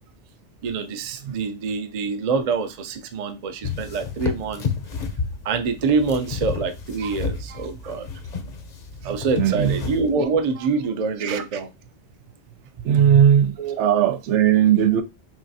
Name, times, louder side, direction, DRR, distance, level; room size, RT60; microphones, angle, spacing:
voice 1, 0.6-4.7 5.4-8.1 9.0-11.7 12.9-13.2 13.6-13.8, right 4 dB, 50° right, 0.5 m, -25 dB
sound 1, 3.6-10.1, left 5 dB, 45° left, 0.7 m, -31 dB
voice 2, 9.4-9.8 11.2-11.4 12.8-15.0, right 9 dB, 85° right, 0.9 m, -18 dB
5.8 x 2.4 x 2.6 m
omnidirectional pair, 1.2 m